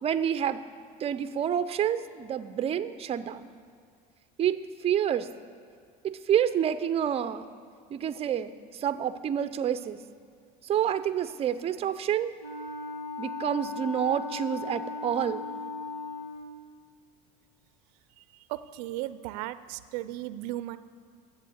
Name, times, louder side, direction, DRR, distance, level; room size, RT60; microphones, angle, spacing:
voice 1, 0.0-0.6 1.0-3.5 4.4-5.3 6.0-7.6 7.9-8.5 8.8-10.0 10.6-12.3 13.2-15.5, right 9 dB, 30° right, 12 dB, 0.5 m, -28 dB
Wind instrument woodwind instrument, 12.4-16.6, left 3 dB, 70° left, 2.0 m, -37 dB
voice 2, 18.5-20.8, right 15 dB, 80° right, 14 dB, 0.5 m, -36 dB
11.0 x 7.7 x 7.9 m, 2.2 s
supercardioid pair, 110°, 20 cm